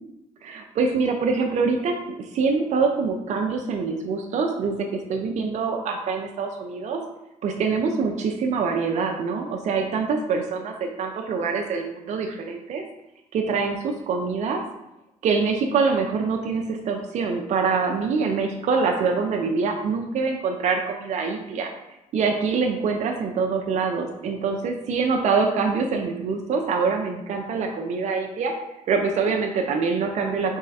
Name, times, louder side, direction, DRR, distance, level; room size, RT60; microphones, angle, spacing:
voice 1, 0.4-7.0 7.4-12.8 13.3-14.6 15.2-21.7 22.1-28.5 28.9-30.6, right 4 dB, 55° right, 2 dB, 0.5 m, -25 dB
3.6 x 3.2 x 4.0 m, 0.93 s
supercardioid pair, 80°, 14 cm